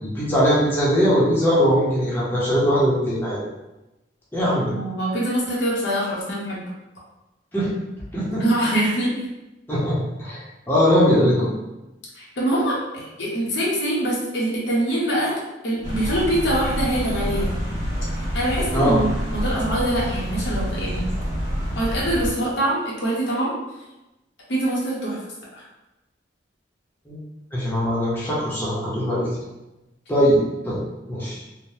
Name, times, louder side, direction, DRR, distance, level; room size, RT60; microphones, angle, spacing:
voice 1, 0.0-3.4 4.3-4.7 7.5-7.7 8.1-8.4 9.7-10.4 10.7-11.5 18.7-19.0 27.1-27.2 27.5-29.3 30.1-30.8 31.1-31.4, equal, 10° left, -9 dB, 0.8 m, -20 dB
voice 2, 4.4-6.6 8.4-9.1 12.1-17.5 18.2-21.1 21.7-23.5 24.5-25.2 25.5-25.6, right 1 dB, 70° left, -5 dB, 0.8 m, -24 dB
sound 1, 15.8-22.3, equal, 25° right, 1.4 m, -27 dB
3.3 x 2.1 x 2.7 m, 0.99 s
head